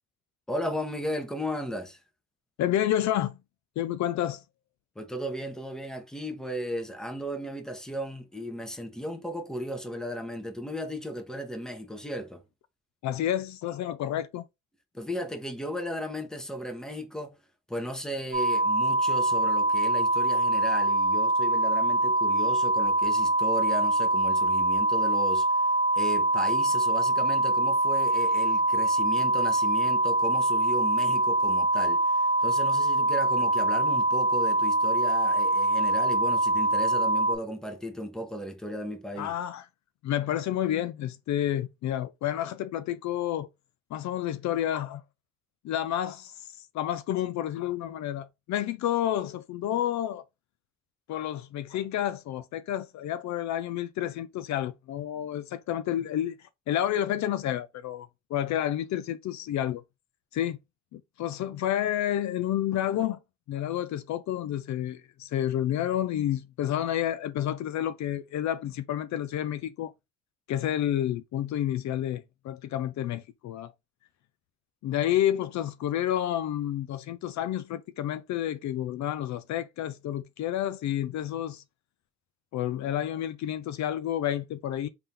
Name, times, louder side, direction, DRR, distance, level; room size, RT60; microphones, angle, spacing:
voice 1, 0.5-2.0 5.0-12.4 14.9-17.4 17.7-25.6 25.9-39.3, equal, ahead, 0.9 m, -35 dB
voice 2, 2.6-3.4 3.8-4.4 13.0-14.4 39.2-39.6 40.0-43.5 43.9-45.0 45.6-50.2 51.1-59.8 60.3-60.6 60.9-63.2 63.5-69.9 70.5-73.7 74.8-81.6 82.5-84.9, left 11 dB, 70° left, 0.5 m, -30 dB
sound 1, 18.3-37.4, right 2 dB, 20° right, 1.2 m, -24 dB
3.6 x 2.8 x 3.4 m
cardioid pair, 90°, 30 cm